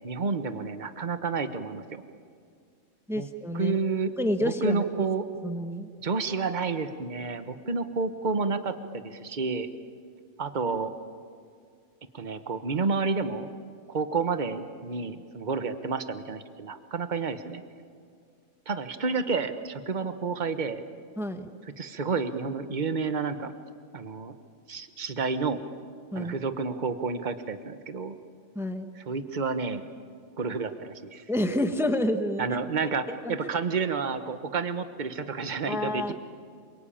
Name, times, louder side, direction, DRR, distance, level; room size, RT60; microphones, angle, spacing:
voice 1, 0.0-2.0 3.2-3.3 3.5-4.1 4.4-5.2 6.0-9.7 10.4-10.9 12.1-13.5 13.9-17.6 18.7-20.8 21.8-23.5 23.9-24.3 24.7-25.6 26.1-28.2 29.1-29.9 30.4-31.2 32.4-36.1, right 4 dB, 35° right, 9 dB, 1.3 m, -30 dB
voice 2, 3.1-3.8 4.2-4.8 5.4-5.9 21.2-21.5 26.1-26.3 28.5-28.9 31.3-32.6 33.2-33.5 35.7-36.1, equal, ahead, 7 dB, 1.2 m, -29 dB
27.5 x 23.5 x 8.7 m, 2.2 s
omnidirectional pair, 1.4 m